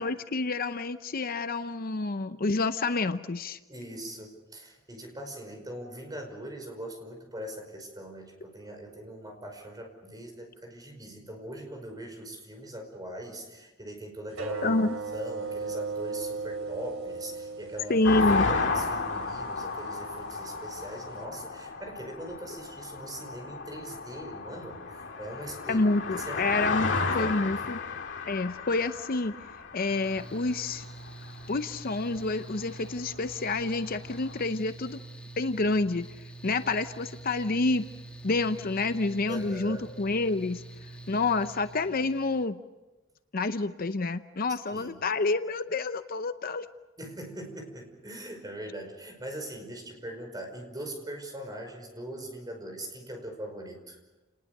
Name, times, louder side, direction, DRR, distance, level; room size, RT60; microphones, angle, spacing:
voice 1, 0.0-3.6 14.6-14.9 17.9-18.5 25.7-27.8 28.3-29.3 29.7-30.8 31.5-35.0 35.4-36.1 36.4-37.8 38.2-40.6 41.1-42.6 43.3-46.7, left 3 dB, 45° left, 10 dB, 0.7 m, -28 dB
voice 2, 3.7-14.8 15.1-18.0 18.5-24.9 25.2-25.8 26.2-27.7 39.3-39.9 44.7-45.0 47.0-54.0, right 1 dB, 20° right, 3 dB, 5.2 m, -41 dB
sound 1, 14.3-21.2, right 4 dB, 85° right, 3.0 m, -38 dB
sound 2, 18.0-31.1 31.9-32.0 32.2-34.4, left 4 dB, 60° left, 2.3 m, -33 dB
Mechanical fan, 29.9-42.4, right 2 dB, 5° left, 1.7 m, -46 dB
29.5 x 20.0 x 6.7 m, 1.1 s
head